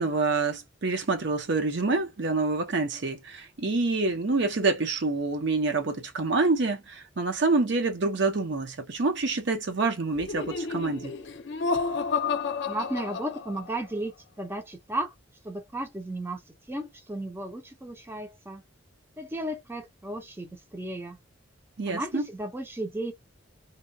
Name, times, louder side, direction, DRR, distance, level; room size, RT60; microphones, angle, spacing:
voice 1, 0.0-11.1 21.8-22.2, right 3 dB, 60° right, 0.7 m, -27 dB
Laughter, 10.1-13.9, left 5 dB, 60° left, 0.6 m, -31 dB
voice 2, 12.7-15.1 15.4-16.4 16.7-18.6 19.2-21.2 21.9-23.1, right 1 dB, 10° right, 0.5 m, -34 dB
2.8 x 2.2 x 2.6 m
head